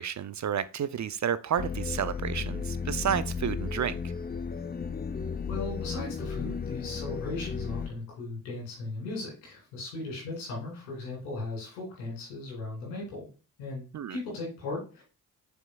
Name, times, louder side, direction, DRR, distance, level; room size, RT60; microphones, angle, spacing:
voice 1, 0.0-4.0 13.9-14.2, right 8 dB, 35° right, 0.6 m, -31 dB
sound 1, 1.6-7.9, left 5 dB, 20° left, 0.6 m, -34 dB
voice 2, 5.5-13.3 13.6-15.0, left 2 dB, 85° left, 3.3 m, -37 dB
6.9 x 6.0 x 2.3 m
hypercardioid pair, 40°, 48 cm